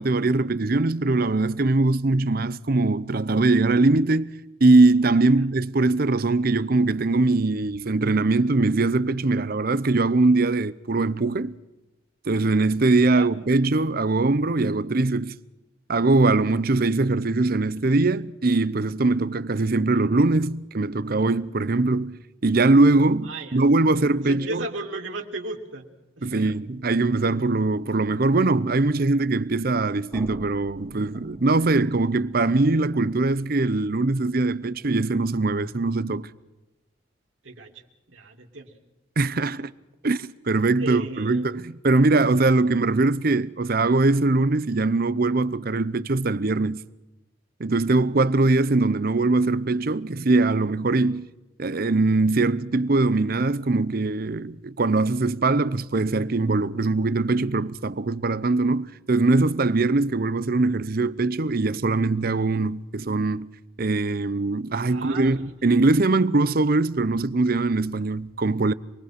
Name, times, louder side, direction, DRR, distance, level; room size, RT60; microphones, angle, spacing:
voice 1, 0.0-4.3 4.6-11.5 12.3-15.4 15.9-24.7 26.2-36.3 39.2-39.7 40.0-46.8 47.6-51.3 51.6-63.5 63.8-68.7, right 2 dB, 50° right, 0.7 m, -22 dB
voice 2, 23.2-23.6 24.3-25.9 26.2-26.4 37.4-37.7 38.1-38.7 40.8-41.4 64.9-65.4, right 2 dB, 85° right, 2.8 m, -34 dB
sound 1, 30.1-36.0, equal, 15° left, 3.4 m, -49 dB
27.0 x 21.0 x 5.9 m
head